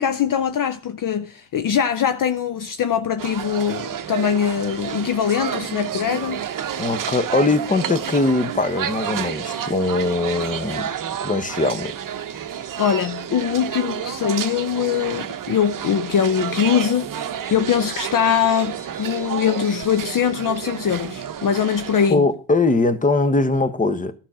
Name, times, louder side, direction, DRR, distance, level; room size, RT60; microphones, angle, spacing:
voice 1, 0.0-6.4 12.8-22.3, left 8 dB, 45° left, 0.7 m, -22 dB
sound 1, 3.2-22.1, right 9 dB, 45° right, 0.9 m, -30 dB
voice 2, 6.8-10.9 11.2-11.9 22.1-24.1, left 3 dB, 15° left, 1.0 m, -21 dB
11.5 x 5.8 x 4.9 m
cardioid pair, 80°, 47 cm